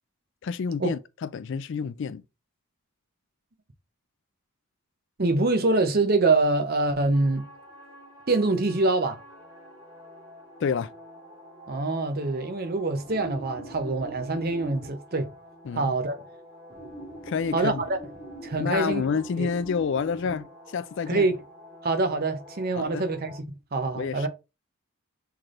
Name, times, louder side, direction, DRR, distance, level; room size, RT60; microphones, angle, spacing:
voice 1, 0.4-2.2 10.6-10.9 15.7-15.9 17.3-17.8 18.6-21.3 22.7-23.0 24.0-24.3, left 6 dB, 55° left, 0.3 m, -29 dB
voice 2, 5.2-7.5 8.3-9.2 11.7-15.3 15.7-16.2 17.5-18.0 18.4-19.0 19.4-19.5 21.1-21.4 21.8-24.3, right 3 dB, 45° right, 0.7 m, -25 dB
sound 1, 7.1-23.4, right 1 dB, 20° right, 2.0 m, -45 dB
5.9 x 3.3 x 2.5 m
head